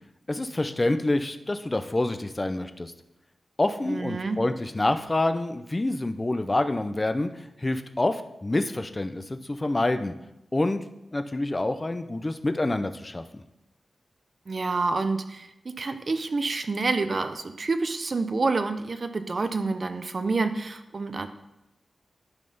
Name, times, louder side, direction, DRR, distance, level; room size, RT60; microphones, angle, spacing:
voice 1, 0.3-2.9 3.6-10.1 10.5-10.8 11.1-13.4, left 2 dB, 25° left, 9 dB, 0.5 m, -27 dB
voice 2, 3.8-4.4 14.5-21.3, right 3 dB, 45° right, 9 dB, 0.6 m, -28 dB
10.5 x 4.2 x 5.3 m, 0.90 s
wide cardioid pair, 110°, 0 cm